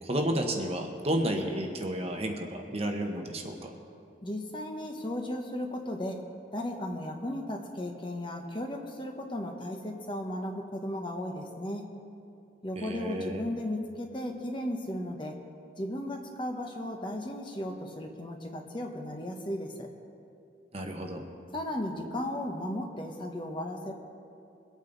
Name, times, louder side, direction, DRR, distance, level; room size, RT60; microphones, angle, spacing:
voice 1, 0.0-3.7 12.8-13.4 20.7-21.3, right 1 dB, 35° right, 3 dB, 1.1 m, -31 dB
voice 2, 4.2-6.2 6.5-11.9 12.6-15.3 15.8-19.9 21.5-23.9, left 1 dB, 25° left, 2 dB, 1.1 m, -35 dB
23.0 x 8.9 x 4.0 m, 2.7 s
head